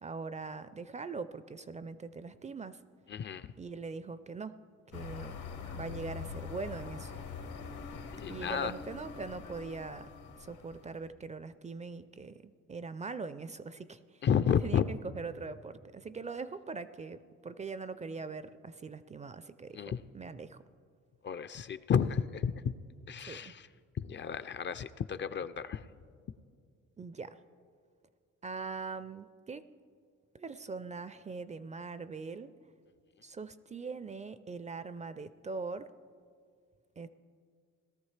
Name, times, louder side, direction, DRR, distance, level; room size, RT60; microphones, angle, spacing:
voice 1, 0.0-2.8 3.6-4.6 4.9-5.4 5.7-7.1 8.3-10.1 10.3-14.2 14.6-20.6 23.3-23.6 27.0-27.4 28.4-29.6 30.3-32.5 33.2-35.9 37.0-37.1, right 4 dB, 25° right, 13 dB, 0.4 m, -42 dB
voice 2, 3.1-3.5 8.1-8.7 14.2-14.8 19.7-20.0 21.2-22.5 23.1-23.7 24.0-25.8, left 7 dB, 40° left, 13 dB, 0.4 m, -31 dB
sound 1, 4.9-11.0, left 6 dB, 75° left, 1.4 m, -44 dB
18.5 x 13.0 x 3.3 m, 2.1 s
cardioid pair, 90°, 30 cm